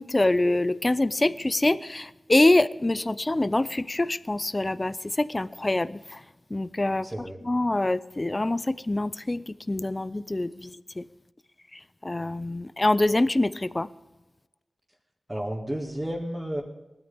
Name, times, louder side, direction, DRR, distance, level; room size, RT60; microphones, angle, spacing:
voice 1, 0.0-6.2 6.5-7.1 7.4-11.1 11.7-13.9, left 2 dB, 25° left, 16 dB, 0.5 m, -25 dB
voice 2, 7.0-7.4 15.3-16.6, equal, 15° right, -3 dB, 2.1 m, -32 dB
19.5 x 13.0 x 3.5 m, 1.0 s
wide cardioid pair, 65°, 0 cm